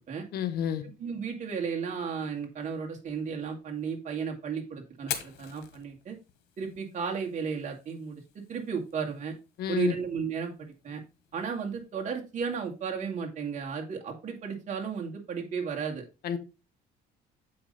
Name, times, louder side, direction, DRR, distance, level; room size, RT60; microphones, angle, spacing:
voice 1, 0.3-0.8 9.6-9.9 16.2-16.4, left 10 dB, 70° left, 1.1 m, -30 dB
voice 2, 0.8-6.2 6.6-9.3 9.7-11.0 11.3-16.0, right 6 dB, 45° right, 2.2 m, -34 dB
Fire, 4.9-12.9, left 10 dB, 85° left, 1.4 m, -46 dB
7.6 x 5.5 x 4.1 m
cardioid pair, 110°, 17 cm